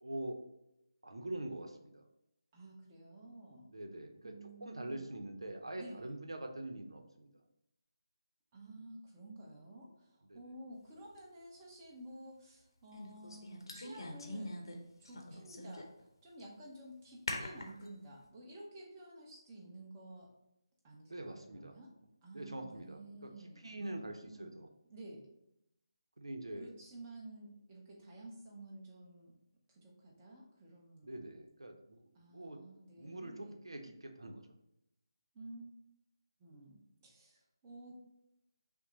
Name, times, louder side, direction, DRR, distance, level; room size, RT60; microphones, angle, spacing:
voice 1, 0.0-0.4 1.0-2.0 3.7-4.3 4.6-7.3 10.3-10.4 15.4-15.5 21.1-21.8 22.3-24.7 26.2-26.7 31.0-32.6 33.0-34.4, right 1 dB, 90° right, 4 dB, 0.7 m, -44 dB
voice 2, 2.5-3.7 4.2-5.1 5.7-6.1 8.5-14.6 15.0-20.3 20.8-21.9 22.2-24.5 24.9-25.3 26.6-29.3 29.7-31.2 32.1-33.6 35.3-35.7 36.4-38.0, right 1 dB, 20° right, -3 dB, 0.8 m, -52 dB
sound 1, 11.2-11.3 12.9-14.8 15.0-16.0 16.4-16.5 17.3-17.9, left 1 dB, 65° left, 0.9 m, -43 dB
5.9 x 2.1 x 3.9 m, 0.85 s
figure-of-eight pair, 160°, 3 cm